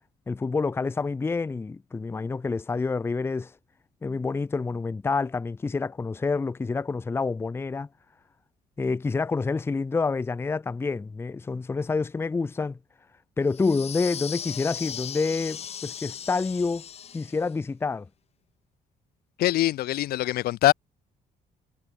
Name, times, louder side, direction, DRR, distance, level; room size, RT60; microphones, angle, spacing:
voice 1, 0.3-3.5 4.0-7.9 8.8-12.8 13.4-16.9 17.1-18.1, left 4 dB, 15° left, 0.7 m, -28 dB
sound 1, 13.5-17.5, left 8 dB, 40° left, 3.5 m, -37 dB
voice 2, 19.4-20.7, left 15 dB, 75° left, 1.3 m, -23 dB
cardioid pair, 150°, 16 cm